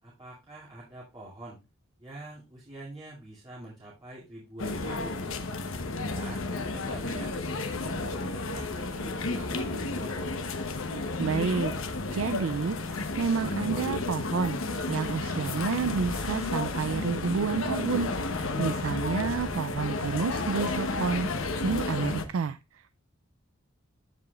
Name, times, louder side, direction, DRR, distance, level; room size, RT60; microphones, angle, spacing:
voice 1, 0.0-1.6 2.0-5.4 6.0-10.2 18.4-18.9, right 1 dB, 25° right, -7 dB, 2.5 m, -45 dB
sound 1, 4.6-22.2, left 3 dB, 90° left, 0.9 m, -32 dB
voice 2, 11.2-11.7 12.1-14.6 14.9-21.3 21.6-23.0, right 5 dB, 80° right, 12 dB, 0.4 m, -30 dB
14.5 x 4.9 x 2.4 m, 0.25 s
head